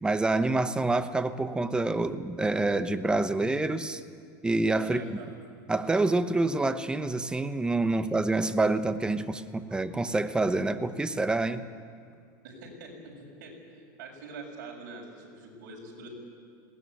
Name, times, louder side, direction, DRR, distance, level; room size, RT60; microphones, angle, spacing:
voice 1, 0.0-4.0 4.4-5.0 5.7-11.6, right 2 dB, 10° right, 11 dB, 0.9 m, -27 dB
voice 2, 4.9-5.3 12.4-13.6 14.0-16.1, right 3 dB, 70° right, 0 dB, 7.1 m, -44 dB
20.5 x 19.0 x 9.5 m, 2.2 s
supercardioid pair, 125°, 10 cm